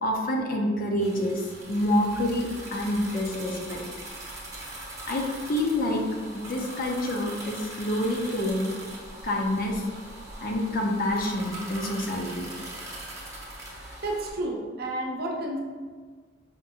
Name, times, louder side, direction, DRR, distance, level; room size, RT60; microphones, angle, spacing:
voice 1, 0.0-3.8 5.1-6.0 6.3-8.7 9.2-9.9 10.4-12.5 13.7-13.8, left 1 dB, 50° left, 0 dB, 0.5 m, -27 dB
sound 1, 1.0-14.3, right 1 dB, 15° right, 0.7 m, -41 dB
voice 2, 14.0-15.6, right 1 dB, 55° right, 0 dB, 0.6 m, -31 dB
5.0 x 2.6 x 2.7 m, 1.5 s
head